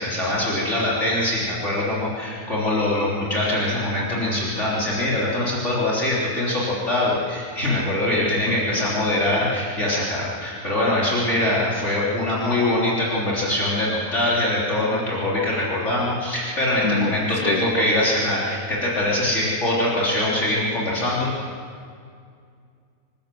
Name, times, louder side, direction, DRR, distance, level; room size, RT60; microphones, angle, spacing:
voice 1, 0.0-21.3, left 1 dB, 50° left, -7 dB, 4.0 m, -23 dB
voice 2, 8.5-8.9 16.8-17.6, left 4 dB, 70° left, 5 dB, 1.9 m, -26 dB
26.5 x 12.5 x 7.7 m, 2.2 s
omnidirectional pair, 1.6 m